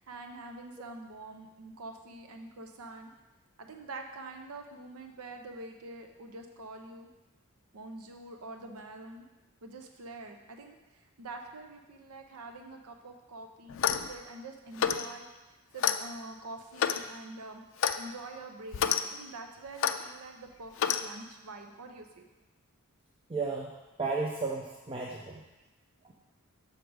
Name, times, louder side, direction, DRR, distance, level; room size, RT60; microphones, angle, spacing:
voice 1, 0.0-3.1 3.6-7.1 7.7-9.3 9.6-15.3 15.7-17.6 18.0-22.3, right 2 dB, 85° right, 4 dB, 0.7 m, -45 dB
Clock, 13.7-14.1 14.8-15.1 15.8-16.0 16.8-17.0 17.8-18.0 18.7-19.0 19.8-20.0 20.8-21.0, left 8 dB, 60° left, 0.3 m, -28 dB
voice 2, 23.3-23.7 24.0-25.3, right 4 dB, 25° right, -2 dB, 0.5 m, -33 dB
6.6 x 5.0 x 4.7 m, 1.1 s
head